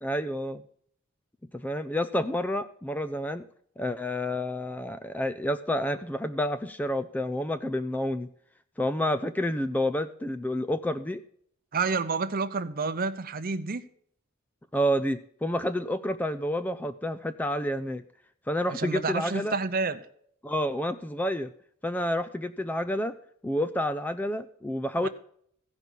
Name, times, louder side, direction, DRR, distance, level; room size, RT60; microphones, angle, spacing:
voice 1, 0.0-0.6 1.5-3.5 3.8-8.3 8.8-11.2 14.7-18.0 18.5-19.5 20.4-21.5 21.8-23.2 23.4-25.1, equal, 5° left, 0.3 m, -29 dB
voice 2, 11.7-13.8 18.7-20.1 25.0-25.1, right 4 dB, 40° right, 0.7 m, -29 dB
15.5 x 5.3 x 6.2 m
head